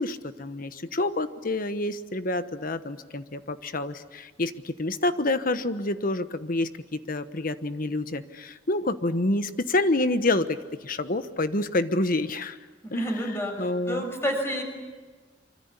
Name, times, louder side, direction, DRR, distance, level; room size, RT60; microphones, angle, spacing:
voice 1, 0.0-12.6 12.9-13.1 13.6-14.0, left 2 dB, 50° left, 11 dB, 1.2 m, -28 dB
voice 2, 12.8-14.6, equal, 15° left, 3 dB, 6.3 m, -29 dB
25.0 x 25.0 x 8.3 m, 1.4 s
head